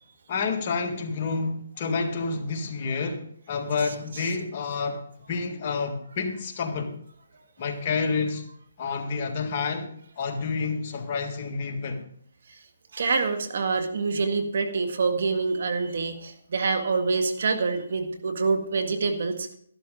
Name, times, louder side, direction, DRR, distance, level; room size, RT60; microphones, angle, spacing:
voice 1, 0.3-6.9 7.6-8.4 8.8-12.1, left 4 dB, 35° left, 1.8 m, -29 dB
voice 2, 12.9-19.6, right 4 dB, 60° right, 1.7 m, -26 dB
13.0 x 12.0 x 3.8 m
hypercardioid pair, 155°, 0 cm